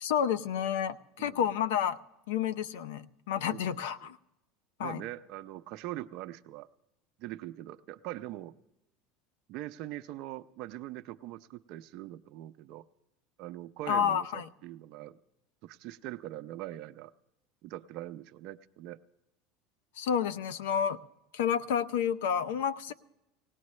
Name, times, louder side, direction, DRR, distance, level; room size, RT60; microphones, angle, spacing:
voice 1, 0.0-2.0 2.3-4.2 4.8-5.0 13.9-14.4 20.0-21.0 21.3-22.9, left 8 dB, 85° left, 17 dB, 0.6 m, -30 dB
voice 2, 3.5-4.1 4.8-6.7 7.2-8.5 9.5-12.9 13.4-15.2 15.6-17.1 17.6-19.0, right 14 dB, 60° right, 9 dB, 0.6 m, -42 dB
19.5 x 17.5 x 3.2 m, 0.89 s
supercardioid pair, 115°, 0 cm